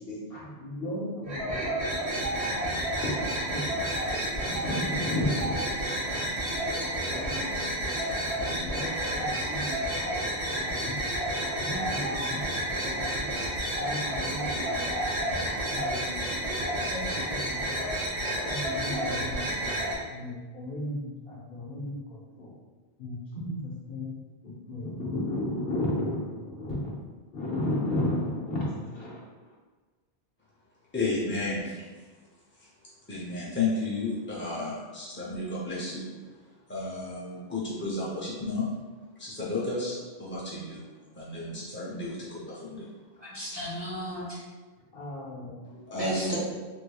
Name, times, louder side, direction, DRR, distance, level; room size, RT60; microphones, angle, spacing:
voice 1, 0.0-1.6 3.0-3.6 4.5-5.7 6.8-7.5 7.8-7.9 8.6-10.0 10.3-10.9 11.6-13.5 13.8-15.2 15.7-16.3 16.6-17.8 18.4-19.7 20.1-22.5 23.0-24.1 24.4-26.9 27.3-29.2 44.9-45.8 46.3-46.4, left 1 dB, 65° left, -4 dB, 1.0 m, -35 dB
sound 1, 1.2-19.9, right 1 dB, 75° right, 1.3 m, -30 dB
voice 2, 30.9-32.0 32.6-32.7 33.1-36.1 36.7-38.7 39.2-40.8 41.1-42.9 45.9-46.4, left 2 dB, 20° left, -7 dB, 0.3 m, -32 dB
voice 3, 43.2-44.4 46.0-46.4, equal, 25° right, -7 dB, 0.9 m, -34 dB
3.6 x 3.1 x 2.2 m, 1.3 s
omnidirectional pair, 1.1 m